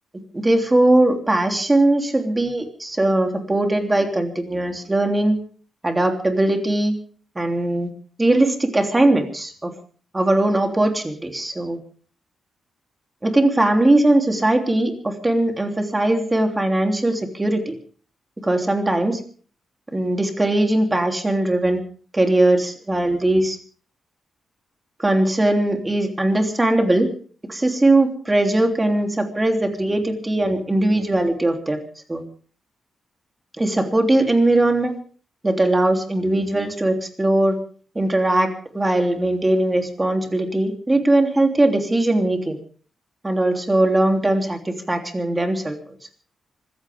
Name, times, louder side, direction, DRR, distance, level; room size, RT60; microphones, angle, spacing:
voice 1, 0.3-5.4 5.8-6.9 7.3-7.9 8.2-9.7 10.1-11.8 13.2-17.7 18.4-19.2 19.9-21.8 22.1-23.6 25.0-27.1 27.5-31.8 32.1-32.2 33.6-34.9 35.4-37.6 37.9-42.6 43.2-45.8, right 1 dB, 15° right, 4 dB, 3.2 m, -20 dB
25.5 x 15.5 x 3.6 m, 0.43 s
wide cardioid pair, 130°, 0 cm